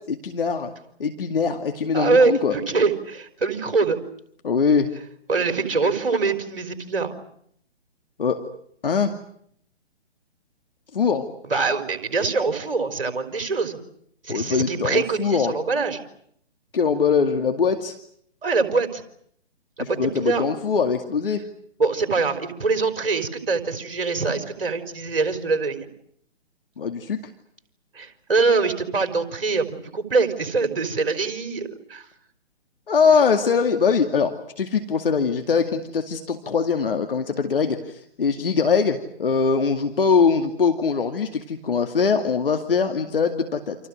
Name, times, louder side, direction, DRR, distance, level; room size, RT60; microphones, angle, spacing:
voice 1, 0.1-0.7 1.0-2.6 4.4-4.9 8.2-8.4 8.8-9.1 10.9-11.2 14.3-15.5 16.7-17.9 19.8-21.4 26.8-27.2 32.9-43.8, left 5 dB, 55° left, 6 dB, 2.4 m, -22 dB
voice 2, 1.9-4.0 5.3-7.2 11.4-13.8 14.2-16.0 18.4-19.0 19.8-20.4 21.8-25.9 27.9-32.1, right 4 dB, 55° right, 9 dB, 4.6 m, -23 dB
29.5 x 27.5 x 6.4 m, 0.68 s
figure-of-eight pair, 135°, 33 cm